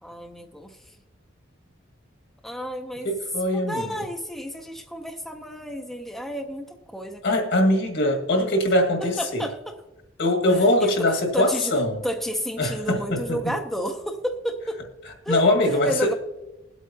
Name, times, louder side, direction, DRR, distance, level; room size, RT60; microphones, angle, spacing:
voice 1, 0.0-0.8 2.4-3.1 3.4-7.2 9.0-9.8 10.8-10.9 11.3-11.7 12.0-14.8 15.2-15.4 15.9-16.1, equal, ahead, 2 dB, 0.7 m, -31 dB
voice 2, 3.0-3.9 7.2-9.5 10.2-12.0 12.6-13.2 15.3-16.1, left 1 dB, 65° left, 2 dB, 1.9 m, -22 dB
21.5 x 8.2 x 2.8 m, 1.0 s
head